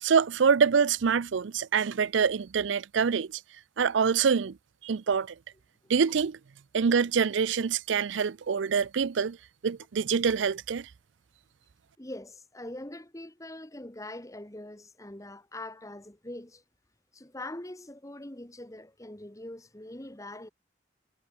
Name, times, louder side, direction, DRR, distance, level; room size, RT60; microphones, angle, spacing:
voice 1, 0.0-3.3 3.8-4.6 4.8-5.3 5.9-6.4 6.7-9.4 9.6-10.9, right 6 dB, 75° right, 0.5 m, -25 dB
voice 2, 12.0-16.6 17.1-20.5, left 1 dB, 15° left, 1.4 m, -43 dB
head